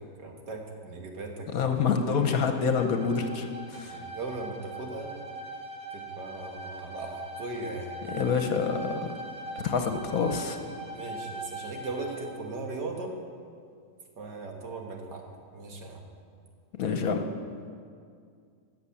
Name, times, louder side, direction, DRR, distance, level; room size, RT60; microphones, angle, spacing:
voice 1, 0.0-1.5 3.8-5.1 5.9-8.0 10.9-13.2 14.2-15.2 15.5-16.0, right 3 dB, 85° right, 1 dB, 2.1 m, -38 dB
voice 2, 1.5-4.0 8.1-9.1 9.6-10.6 16.7-17.3, left 5 dB, 60° left, 6 dB, 1.2 m, -27 dB
Bowed string instrument, 1.9-12.3, right 2 dB, 55° right, 2.4 m, -41 dB
14.0 x 6.7 x 8.5 m, 2.2 s
omnidirectional pair, 1.8 m